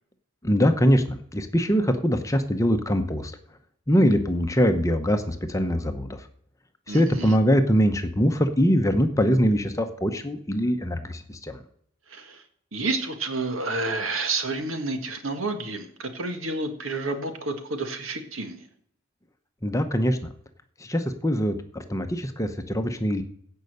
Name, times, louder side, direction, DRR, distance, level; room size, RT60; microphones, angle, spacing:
voice 1, 0.4-3.3 3.9-6.2 6.9-11.6 19.6-20.2 20.8-23.2, equal, 15° left, 7 dB, 0.8 m, -23 dB
voice 2, 6.9-7.4 12.1-12.4 12.7-18.6, right 3 dB, 75° right, 6 dB, 1.7 m, -30 dB
16.0 x 5.5 x 6.6 m, 0.67 s
head